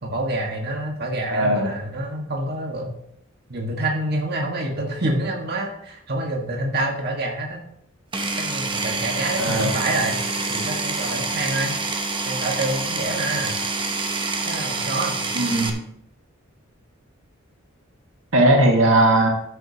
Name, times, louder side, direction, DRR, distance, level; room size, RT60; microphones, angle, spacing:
voice 1, 0.0-2.9 3.5-7.6 8.4-10.2 10.5-11.7 12.3-13.5 14.5-15.2, right 1 dB, 50° right, 0 dB, 1.6 m, -27 dB
voice 2, 1.3-1.7 9.4-9.7 15.3-15.9 18.3-19.3, right 1 dB, 70° right, 1 dB, 1.5 m, -18 dB
Power tool, 8.1-15.7, right 3 dB, 25° right, 0.9 m, -27 dB
13.5 x 7.7 x 2.9 m, 0.74 s
head